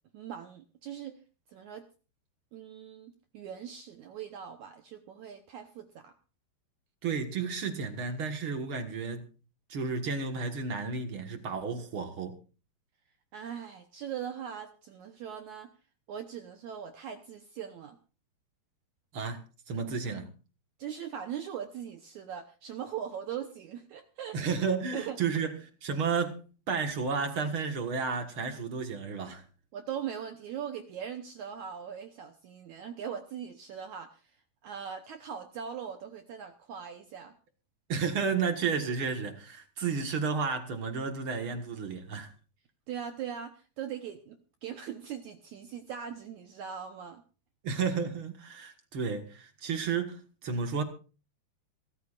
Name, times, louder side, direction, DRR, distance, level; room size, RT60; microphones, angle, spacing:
voice 1, 0.1-1.2 1.5-1.9 2.5-6.1 13.3-15.7 16.1-18.0 20.8-24.4 24.9-25.2 29.7-37.4 42.9-47.2, right 8 dB, 75° right, 1.8 m, -40 dB
voice 2, 7.0-9.3 9.7-12.3 19.1-19.4 19.7-20.3 24.3-29.4 37.9-42.3 47.6-50.8, right 5 dB, 55° right, 1.5 m, -32 dB
26.0 x 14.0 x 2.5 m
omnidirectional pair, 4.6 m